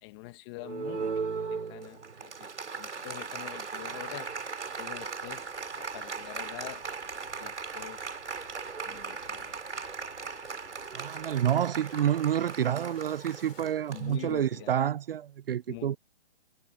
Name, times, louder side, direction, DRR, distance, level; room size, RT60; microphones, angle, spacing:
voice 1, 0.0-4.3 4.8-5.5 5.8-6.9 7.4-8.0 8.9-9.5 13.9-14.8 15.7-16.0, left 24 dB, 25° left, 1.2 m, -45 dB
Applause, 0.6-14.7, right 5 dB, 80° right, 3.8 m, -38 dB
sound 1, 2.7-13.7, left 8 dB, 60° left, 6.2 m, -59 dB
voice 2, 10.9-16.0, right 10 dB, 55° right, 0.5 m, -28 dB
hypercardioid pair, 145°, 34 cm